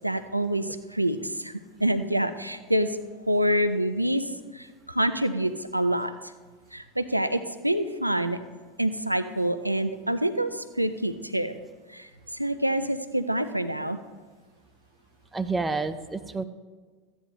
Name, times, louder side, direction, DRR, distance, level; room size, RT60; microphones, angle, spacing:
voice 1, 0.0-6.1 6.7-8.4 8.8-11.5 11.9-14.0, right 1 dB, 90° right, 11 dB, 0.4 m, -27 dB
voice 2, 15.3-16.4, right 3 dB, 10° right, 10 dB, 0.6 m, -29 dB
14.5 x 9.3 x 3.1 m, 1.4 s
figure-of-eight pair, 80°, 0 cm